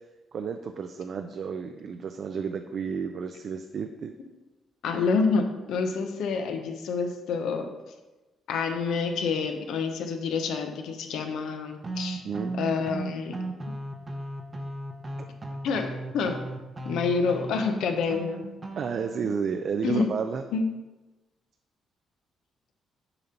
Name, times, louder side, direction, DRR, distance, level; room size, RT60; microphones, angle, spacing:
voice 1, 0.3-4.1 12.2-12.6 18.8-20.4, right 6 dB, 55° right, 7 dB, 0.3 m, -32 dB
voice 2, 4.8-7.7 8.5-12.2 12.6-13.4 15.6-16.4 16.8-18.4 19.8-20.1 20.5-20.6, left 5 dB, 80° left, 5 dB, 0.7 m, -28 dB
sound 1, 11.8-19.2, right 2 dB, 30° right, 0.7 m, -36 dB
6.8 x 2.9 x 5.2 m, 1.1 s
cardioid pair, 90°, 0 cm